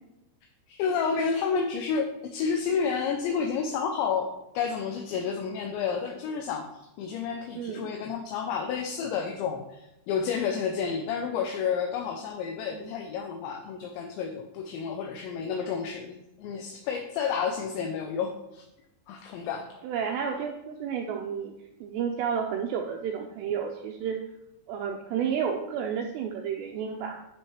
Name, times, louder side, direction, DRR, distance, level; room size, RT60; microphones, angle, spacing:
voice 1, 0.7-18.6 19.1-19.7, left 6 dB, 80° left, 3 dB, 2.8 m, -30 dB
voice 2, 7.6-7.9 12.7-12.9 19.8-21.5 21.8-24.2 24.7-27.2, right 7 dB, 85° right, 2 dB, 2.5 m, -31 dB
10.0 x 6.6 x 3.2 m, 0.91 s
omnidirectional pair, 5.6 m